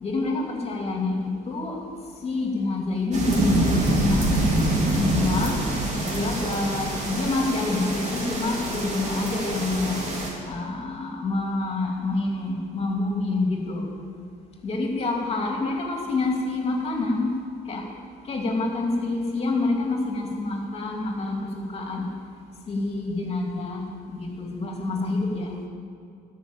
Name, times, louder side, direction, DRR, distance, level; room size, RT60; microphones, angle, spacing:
voice 1, 0.0-1.8 2.2-4.4 4.9-5.6 6.1-10.0 10.4-13.9 14.6-17.4 17.6-17.8 18.2-22.1 22.7-25.6, left 2 dB, 35° left, 1 dB, 2.6 m, -27 dB
sound 1, 3.1-10.3, right 1 dB, 45° right, 3.3 m, -25 dB
13.5 x 6.4 x 8.8 m, 2.4 s
cardioid pair, 110°, 17 cm